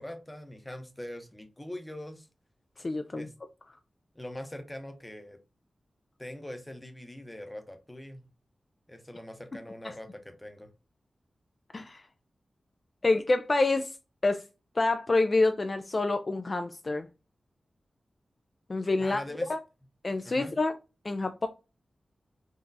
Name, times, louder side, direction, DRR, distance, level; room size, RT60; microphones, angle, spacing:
voice 1, 0.0-2.3 3.1-3.3 4.1-5.4 6.2-8.2 8.9-10.7 19.0-19.5 20.2-20.5, left 1 dB, 15° left, 0.7 m, -42 dB
voice 2, 2.8-3.3 11.7-12.0 13.0-13.9 14.2-14.4 14.8-17.1 18.7-19.2 19.5-19.6 20.0-20.7 21.0-21.5, left 2 dB, 40° left, 0.3 m, -27 dB
3.8 x 2.3 x 2.6 m
wide cardioid pair, 80°, 0 cm